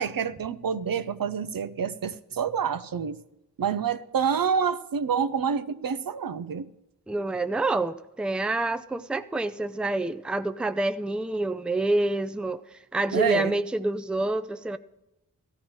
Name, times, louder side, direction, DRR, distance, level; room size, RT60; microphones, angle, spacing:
voice 1, 0.0-3.2 3.6-6.7 13.1-13.6, right 7 dB, 65° right, 0.6 m, -27 dB
voice 2, 7.1-12.6 12.9-14.8, right 2 dB, 5° right, 0.5 m, -27 dB
16.5 x 13.5 x 3.1 m
cardioid pair, 50°, 37 cm